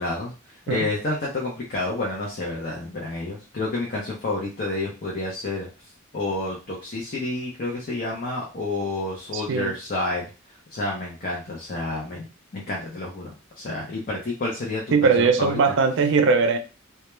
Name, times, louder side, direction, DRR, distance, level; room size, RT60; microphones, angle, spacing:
voice 1, 0.0-5.7 6.1-10.3 10.7-12.3 12.5-15.6, left 2 dB, 45° left, 0.6 m, -29 dB
voice 2, 9.3-9.7 14.9-16.6, right 4 dB, 60° right, 0.4 m, -20 dB
2.2 x 2.1 x 3.0 m
head